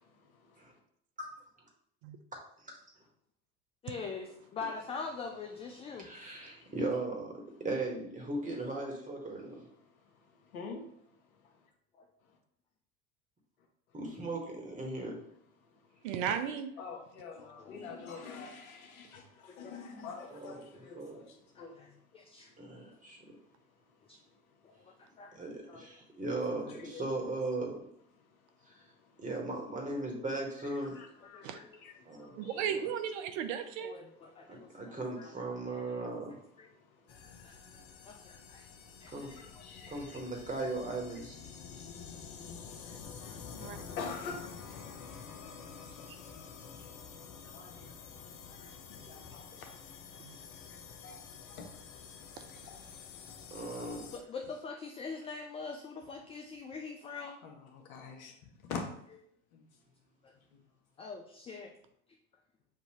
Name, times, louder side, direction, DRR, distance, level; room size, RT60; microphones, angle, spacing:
voice 1, 0.2-0.7 6.3-6.7 9.8-11.6 15.6-16.0 16.8-21.9 23.2-23.3 26.3-27.0 28.3-29.2 30.9-32.7 34.3-34.8 36.7-40.2 41.5-44.7 46.8-48.2 48.5-52.3 52.6-53.5 53.7-54.1 57.4-58.3 58.6-58.9 59.5-59.6 60.5-60.6, left 5 dB, 75° left, 3 dB, 1.0 m, -48 dB
voice 2, 3.8-6.3 12.0-12.1 17.4-17.8 19.5-19.8 21.6-21.9 22.1-22.5 24.1-24.2 24.6-24.7 25.2-25.4 25.7-25.9 31.3-31.8 32.2-32.5 33.8-36.0 36.6-36.7 37.4-37.5 38.1-38.7 39.0-39.5 39.8-40.0 42.8-43.7 44.8-45.0 48.6-48.7 54.1-57.4 60.2-60.3 61.0-61.7, left 4 dB, 15° left, 2 dB, 0.3 m, -44 dB
voice 3, 6.0-7.3 7.6-9.6 13.9-15.2 20.3-21.2 22.6-23.2 25.3-27.8 28.7-28.8 29.2-30.9 32.0-32.5 32.7-32.8 34.5-36.4 39.1-39.3 39.9-41.4 53.5-54.1, right 2 dB, 20° right, 0 dB, 1.5 m, -37 dB
voice 4, 16.0-16.7 31.4-31.6 32.4-34.0 43.6-43.8 50.2-50.4 52.4-52.5, right 8 dB, 65° right, 8 dB, 0.6 m, -35 dB
sound 1, 37.1-54.2, left 6 dB, 55° left, 0.8 m, -49 dB
6.5 x 2.6 x 3.0 m, 0.70 s
hypercardioid pair, 75°, 42 cm